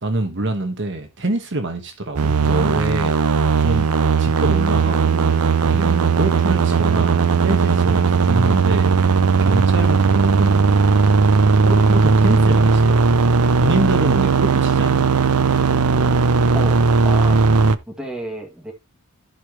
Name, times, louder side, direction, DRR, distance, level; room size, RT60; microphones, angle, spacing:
voice 1, 0.0-3.2 3.6-3.9 4.2-8.9 9.4-10.6 11.6-13.2 13.6-15.0, right 2 dB, 55° right, 1.3 m, -25 dB
sound 1, 2.2-17.8, right 4 dB, 85° right, 0.7 m, -17 dB
voice 2, 16.5-17.5 17.9-18.7, right 1 dB, 5° right, 2.2 m, -32 dB
14.5 x 4.9 x 3.1 m
head